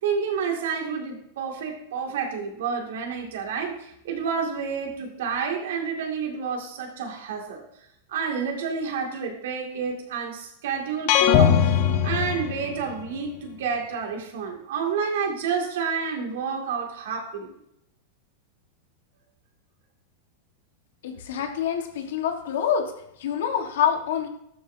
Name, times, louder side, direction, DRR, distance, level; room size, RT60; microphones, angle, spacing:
voice 1, 0.0-7.6 8.1-11.7 12.0-17.5, right 6 dB, 75° right, 1 dB, 2.4 m, -29 dB
sound 1, 11.1-13.1, left 8 dB, 60° left, 1.1 m, -20 dB
voice 2, 21.0-22.9 23.2-24.3, left 8 dB, 75° left, 4 dB, 1.5 m, -26 dB
12.5 x 7.3 x 2.8 m, 0.77 s
hypercardioid pair, 105°, 0 cm